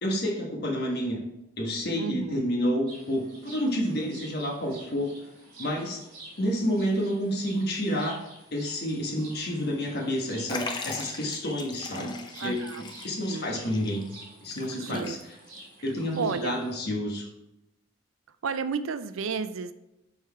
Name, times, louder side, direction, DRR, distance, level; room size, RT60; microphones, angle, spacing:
voice 1, 0.0-1.2 1.6-5.1 5.6-6.0 6.4-8.2 8.5-12.1 12.4-12.6 13.0-14.0 14.4-15.2 15.8-17.3, equal, 55° left, 0 dB, 1.4 m, -29 dB
voice 2, 1.9-2.4 12.4-12.8 13.3-13.5 14.9-15.2 16.2-16.5 18.4-19.7, right 5 dB, 85° right, 12 dB, 0.5 m, -32 dB
sound 1, 2.9-16.8, right 2 dB, 40° right, 2.4 m, -49 dB
Liquid, 10.5-15.6 15.9-16.0 16.9-17.0, left 3 dB, 20° left, 0.6 m, -40 dB
5.6 x 4.4 x 4.7 m, 0.89 s
head